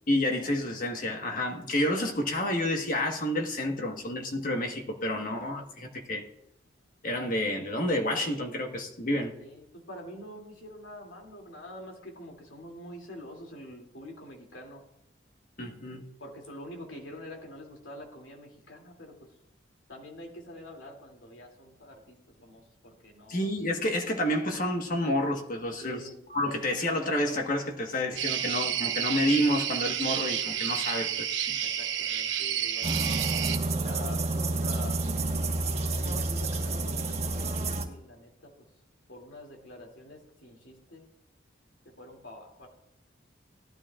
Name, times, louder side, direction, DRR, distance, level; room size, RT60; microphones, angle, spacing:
voice 1, 0.1-6.2 7.0-9.3 15.6-16.1 23.3-26.0 26.3-31.6, left 1 dB, 45° left, 3 dB, 1.4 m, -29 dB
voice 2, 9.4-14.8 16.2-19.3 19.9-23.4 25.8-26.2 31.6-35.0 36.0-38.5 39.1-41.0 41.8-42.7, left 1 dB, 85° left, 1 dB, 2.7 m, -46 dB
sound 1, 28.2-33.6, right 9 dB, 75° right, 0.8 m, -30 dB
sound 2, 32.8-37.8, right 2 dB, 35° right, 1.3 m, -29 dB
18.5 x 11.5 x 2.4 m, 0.81 s
head